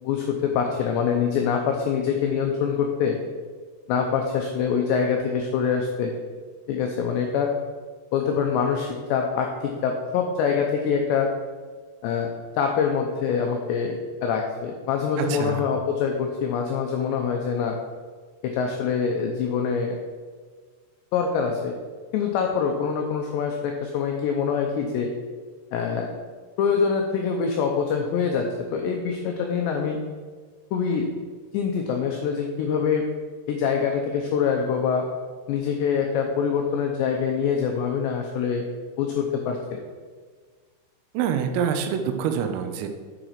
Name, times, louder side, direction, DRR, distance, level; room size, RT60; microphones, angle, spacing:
voice 1, 0.0-3.2 3.9-6.1 6.7-7.5 8.1-11.3 12.0-12.3 12.6-13.9 14.2-17.8 18.4-20.0 21.1-21.7 22.1-25.1 25.7-26.1 26.6-30.0 30.7-31.1 31.5-33.1 33.5-35.1 35.5-38.6 39.0-39.8, left 6 dB, 85° left, 2 dB, 2.5 m, -24 dB
voice 2, 15.2-15.7 41.2-42.9, right 7 dB, 85° right, 6 dB, 3.5 m, -26 dB
9.5 x 5.0 x 5.7 m, 1.5 s
omnidirectional pair, 5.9 m